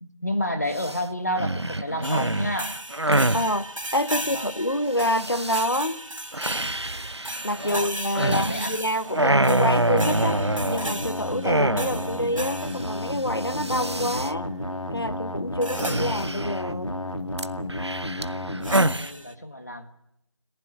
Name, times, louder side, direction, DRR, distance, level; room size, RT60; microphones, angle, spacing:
voice 1, 0.0-2.8 4.1-4.5 7.5-7.9 8.2-8.8 18.9-19.9, equal, 30° left, 7 dB, 1.5 m, -30 dB
sound 1, 0.7-1.0 1.4-3.5 5.0-5.6 6.3-8.8 9.1-11.0 11.4-12.2 12.5-12.6 12.8-13.1 13.4-14.3 15.8-16.7 17.4-19.1, right 1 dB, 55° right, 0.8 m, -26 dB
sound 2, 2.0-13.5 15.6-16.1 18.6-19.3, right 1 dB, 85° right, 1.8 m, -36 dB
voice 2, 3.3-6.0 7.4-10.4 10.7-14.5 14.9-16.9, left 1 dB, 50° left, 12 dB, 1.1 m, -27 dB
sound 3, 9.9-18.9, left 1 dB, 90° left, 2.6 m, -32 dB
29.5 x 15.5 x 7.7 m, 0.84 s
figure-of-eight pair, 175°, 16 cm